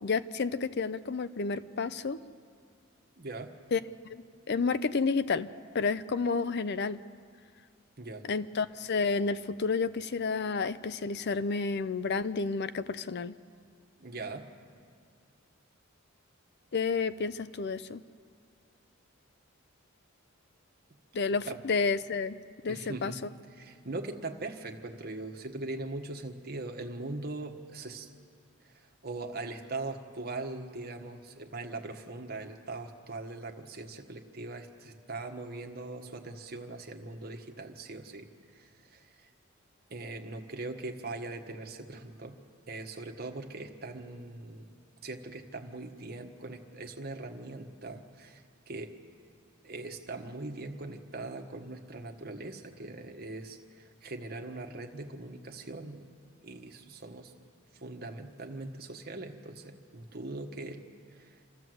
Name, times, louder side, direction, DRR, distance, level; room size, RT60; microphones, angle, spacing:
voice 1, 0.0-2.2 3.7-3.8 4.1-5.5 5.7-7.0 8.3-13.4 16.7-18.0 21.1-22.4 22.6-23.1, left 4 dB, 50° left, 14 dB, 0.5 m, -30 dB
voice 2, 3.2-3.5 8.0-8.2 14.0-14.5 21.5-21.6 22.7-23.2 23.6-28.1 29.0-38.3 38.5-39.3 39.9-42.4 42.7-44.6 45.0-48.9 49.6-56.0 56.4-57.3 57.7-60.8 61.1-61.3, right 2 dB, 50° right, 4 dB, 1.5 m, -41 dB
27.0 x 14.0 x 7.8 m, 2.2 s
head